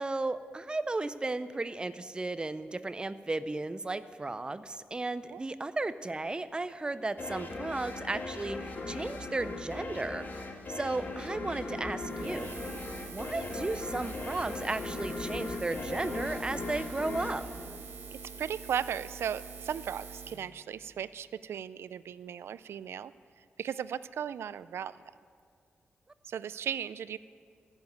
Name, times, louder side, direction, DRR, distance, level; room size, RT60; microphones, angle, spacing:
voice 1, 0.0-10.3 10.7-12.5 13.1-17.4, right 2 dB, 20° right, 13 dB, 0.5 m, -34 dB
sound 1, 7.2-18.4, left 2 dB, 50° left, 1.8 m, -39 dB
Buzz, 12.0-20.4, right 5 dB, 70° right, 1.8 m, -45 dB
voice 2, 18.1-23.1 23.6-25.0 26.2-27.2, right 8 dB, 90° right, 16 dB, 0.4 m, -36 dB
15.0 x 7.2 x 9.1 m, 2.2 s
wide cardioid pair, 105°, 4 cm